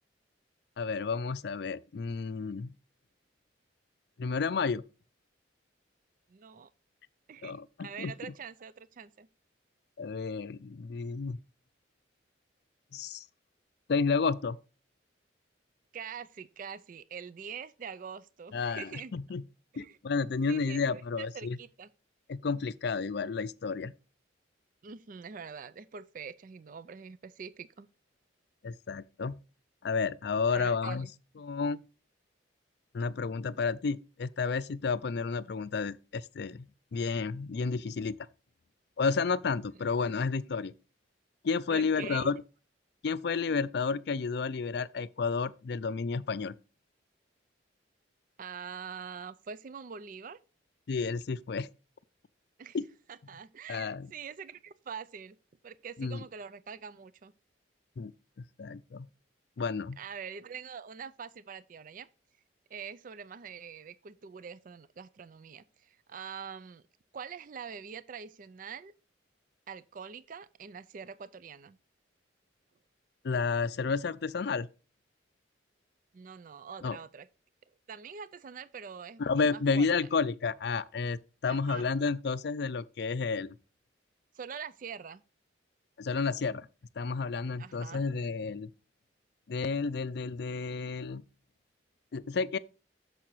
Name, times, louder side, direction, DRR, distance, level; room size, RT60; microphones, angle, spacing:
voice 1, 0.8-2.7 4.2-4.8 7.4-8.1 10.0-11.4 12.9-13.2 13.9-14.6 18.5-19.4 19.8-21.6 22.3-23.9 28.6-29.4 29.8-31.1 31.4-31.8 32.9-38.2 39.0-40.7 41.4-42.4 43.0-46.6 50.9-51.7 52.7-52.8 53.7-54.1 56.0-56.2 58.0-58.1 58.6-59.1 59.6-60.0 73.2-74.7 76.8-77.0 79.2-83.6 86.0-86.7 87.0-88.7 89.5-91.2 92.1-92.6, left 4 dB, 60° left, 0.4 m, -31 dB
voice 2, 6.3-6.7 7.3-9.3 15.9-19.1 19.8-20.0 20.5-21.9 24.8-27.9 30.5-31.1 41.7-42.3 48.4-50.4 52.6-52.8 53.1-55.4 55.6-57.3 60.0-62.1 62.7-66.8 67.1-68.9 69.7-71.8 76.1-77.3 77.9-79.2 79.5-80.1 81.5-81.8 84.3-85.2 87.6-88.0, right 6 dB, 45° right, 0.4 m, -44 dB
8.5 x 6.8 x 3.1 m
head